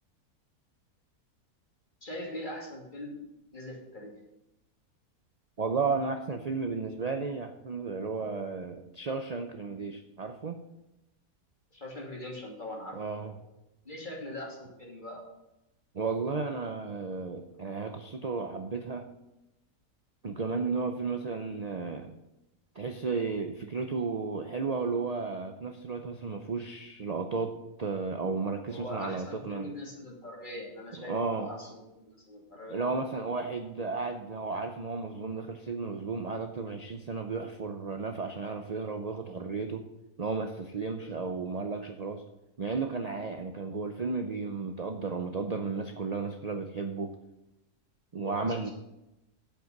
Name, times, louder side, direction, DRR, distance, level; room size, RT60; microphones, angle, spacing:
voice 1, 2.0-3.2 3.5-4.1 11.7-13.3 13.8-15.2 28.7-32.8 40.9-41.3 48.2-48.7, left 1 dB, 30° left, -2 dB, 2.8 m, -42 dB
voice 2, 5.6-10.6 12.9-13.3 15.9-19.0 20.2-22.1 22.8-29.7 31.0-31.5 32.7-39.8 40.2-42.2 42.6-47.1 48.1-48.7, right 4 dB, 50° right, 6 dB, 0.4 m, -33 dB
8.7 x 8.0 x 6.5 m, 0.94 s
omnidirectional pair, 1.7 m